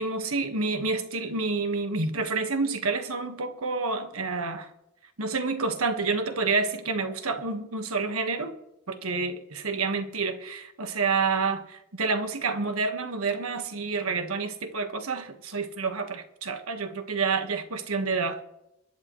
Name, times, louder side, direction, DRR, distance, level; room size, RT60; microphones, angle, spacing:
voice 1, 0.0-4.7 5.2-8.5 8.9-18.4, right 4 dB, 85° right, 1.5 m, -28 dB
24.0 x 11.0 x 3.1 m
head